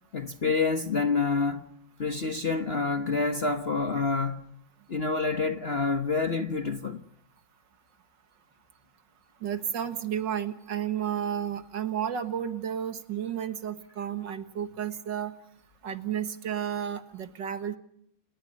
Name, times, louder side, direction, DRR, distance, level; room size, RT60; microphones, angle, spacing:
voice 1, 0.1-1.6 2.0-4.5 4.9-7.0, left 4 dB, 40° left, 1.1 m, -27 dB
voice 2, 9.4-15.3 15.8-17.8, right 9 dB, 65° right, 2.1 m, -32 dB
29.0 x 20.5 x 5.3 m
omnidirectional pair, 2.2 m